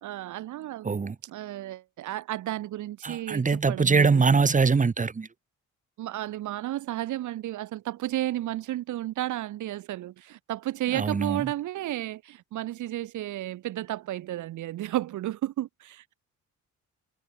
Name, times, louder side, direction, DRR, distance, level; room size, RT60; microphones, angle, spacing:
voice 1, 0.0-0.9 1.2-4.6 6.0-16.0, right 14 dB, 80° right, 1.5 m, -33 dB
voice 2, 0.8-1.1 3.0-5.3 10.9-11.4, right 4 dB, 25° right, 1.2 m, -23 dB
cardioid pair, 90°, 30 cm